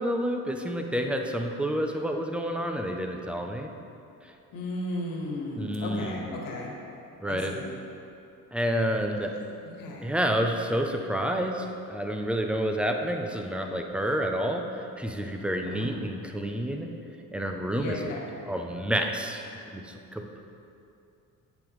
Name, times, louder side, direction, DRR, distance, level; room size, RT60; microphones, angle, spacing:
voice 1, 0.0-3.7 5.6-6.4 7.2-7.6 8.5-9.3 10.0-16.9 17.3-18.2 18.5-19.4 19.7-20.5, equal, 5° right, 3 dB, 0.4 m, -29 dB
voice 2, 4.5-6.7 7.3-7.7 9.8-10.1 15.7-15.9 17.7-18.3, left 1 dB, 70° left, -1 dB, 1.5 m, -35 dB
8.5 x 7.9 x 3.1 m, 2.7 s
cardioid pair, 140°, 35 cm